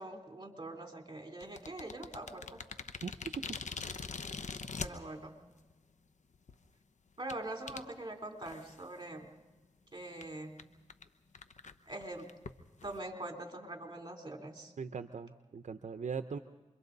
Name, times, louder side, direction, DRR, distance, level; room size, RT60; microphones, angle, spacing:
voice 1, 0.0-2.6 4.8-5.3 7.2-9.3 9.9-10.6 11.9-12.3 12.8-14.7, right 2 dB, 35° right, 3 dB, 3.4 m, -43 dB
sound 1, 1.4-4.9 5.7-5.8 6.3-6.5 7.3-7.4 7.7-7.8 8.4-8.9 9.2-9.3 9.6-9.7 10.2-10.3 10.6-10.7 10.9-11.1 11.3-13.0, left 5 dB, 70° left, 0.9 m, -42 dB
voice 2, 3.0-3.6 14.8-16.4, right 5 dB, 70° right, 9 dB, 0.7 m, -40 dB
28.0 x 23.5 x 4.0 m, 1.2 s
cardioid pair, 45°, 13 cm